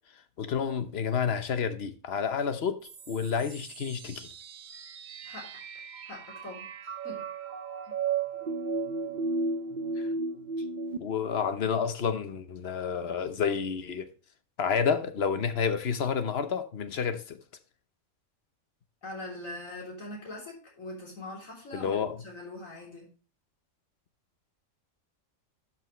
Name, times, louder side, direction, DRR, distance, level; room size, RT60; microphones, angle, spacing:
voice 1, 0.4-4.3 10.0-10.1 11.0-14.1 14.6-17.4 21.7-22.2, left 6 dB, 55° left, 1.1 m, -30 dB
sound 1, 2.8-11.0, right 4 dB, 45° right, 0.7 m, -35 dB
voice 2, 5.2-5.6 6.0-7.3 7.8-8.0 19.0-23.1, left 1 dB, 85° left, 3.8 m, -42 dB
12.0 x 6.1 x 3.1 m
omnidirectional pair, 1.4 m